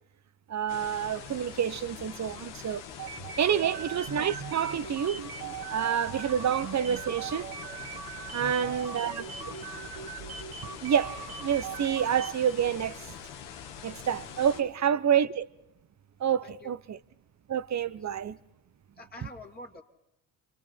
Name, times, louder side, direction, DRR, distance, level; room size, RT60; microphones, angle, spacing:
voice 1, 0.5-2.8 3.4-5.3 5.7-7.5 8.3-9.3 10.8-13.0 13.8-15.4 16.2-17.0 17.5-18.4, right 8 dB, 40° right, 0.9 m, -28 dB
sound 1, 0.7-14.6, left 8 dB, 75° left, 1.7 m, -44 dB
sound 2, 3.0-12.5, right 7 dB, 55° right, 1.8 m, -40 dB
voice 2, 8.3-9.6 14.5-15.0 16.4-16.7 17.8-18.3 19.0-19.8, left 3 dB, 20° left, 2.5 m, -49 dB
30.0 x 25.0 x 4.4 m
hypercardioid pair, 60°, 43 cm